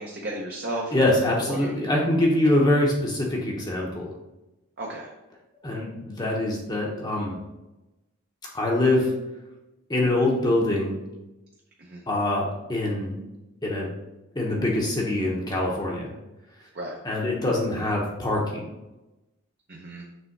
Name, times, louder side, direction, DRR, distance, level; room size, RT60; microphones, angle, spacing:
voice 1, 0.0-0.9 1.5-1.7 4.8-5.1 11.8-12.0 16.7-17.0 19.7-20.0, right 1 dB, 45° right, -2 dB, 0.7 m, -33 dB
voice 2, 0.9-4.1 5.6-7.4 8.5-9.1 9.9-11.0 12.1-13.2 13.6-13.9 14.4-16.1 17.0-18.6, left 1 dB, 20° left, -2 dB, 0.8 m, -24 dB
6.3 x 3.4 x 4.5 m, 1.0 s
head